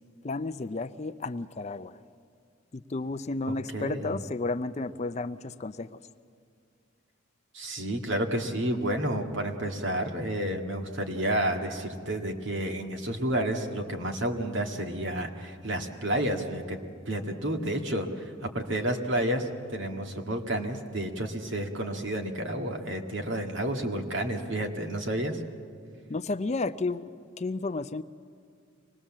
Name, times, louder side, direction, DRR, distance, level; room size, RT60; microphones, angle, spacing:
voice 1, 0.2-2.0 2.7-6.0 26.1-28.0, left 3 dB, 35° left, 12 dB, 0.5 m, -32 dB
voice 2, 3.7-4.2 7.5-16.8 17.1-25.4, right 1 dB, 65° right, 3 dB, 2.0 m, -30 dB
25.5 x 20.0 x 7.3 m, 2.3 s
head